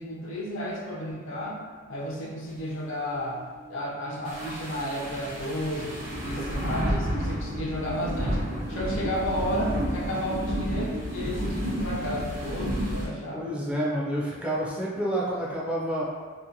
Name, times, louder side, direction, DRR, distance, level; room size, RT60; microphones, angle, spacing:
voice 1, 0.0-1.6 1.9-3.4 3.7-8.4 8.7-13.6, equal, 80° left, -3 dB, 0.5 m, -33 dB
sound 1, 3.1-5.6 5.9-9.8 10.2-11.8, equal, 85° right, 0.3 m, -47 dB
sound 2, 4.2-13.1, equal, 40° right, 0.7 m, -31 dB
voice 2, 13.3-16.0, right 1 dB, 5° right, -6 dB, 0.3 m, -29 dB
2.6 x 2.1 x 2.6 m, 1.5 s
head